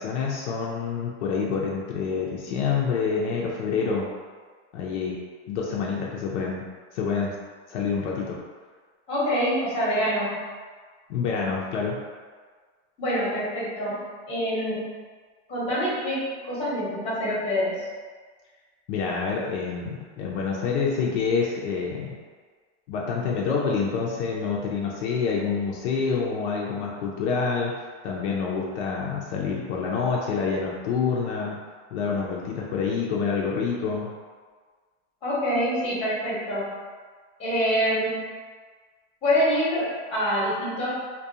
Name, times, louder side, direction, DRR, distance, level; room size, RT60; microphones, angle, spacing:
voice 1, 0.0-4.1 4.7-5.2 5.5-6.6 6.9-7.3 7.7-8.4 11.1-11.9 18.9-22.1 22.9-27.7 28.0-31.6 31.9-34.1, left 5 dB, 70° left, -3 dB, 0.6 m, -27 dB
voice 2, 9.1-10.5 13.0-14.9 15.5-17.8 35.2-36.7 37.4-38.2 39.2-40.9, equal, 15° left, -8 dB, 0.9 m, -26 dB
2.4 x 2.2 x 2.7 m, 1.5 s
supercardioid pair, 150°, 37 cm